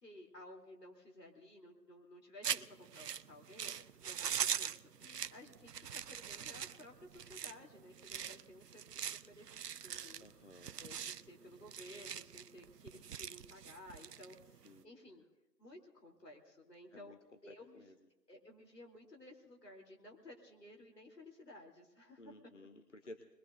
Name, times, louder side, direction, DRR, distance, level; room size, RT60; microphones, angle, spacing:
voice 1, 0.0-10.3 10.8-15.2 15.6-17.2 17.4-17.9 18.3-22.3, left 1 dB, 70° left, 1 dB, 3.5 m, -56 dB
sound 1, 2.4-14.8, right 8 dB, 70° right, 0.6 m, -42 dB
voice 2, 10.2-10.7 14.6-14.9 16.9-17.2 17.5-17.9 22.2-23.2, left 1 dB, 45° left, 7 dB, 0.8 m, -55 dB
25.5 x 21.5 x 2.6 m, 1.0 s
figure-of-eight pair, 175°, 50 cm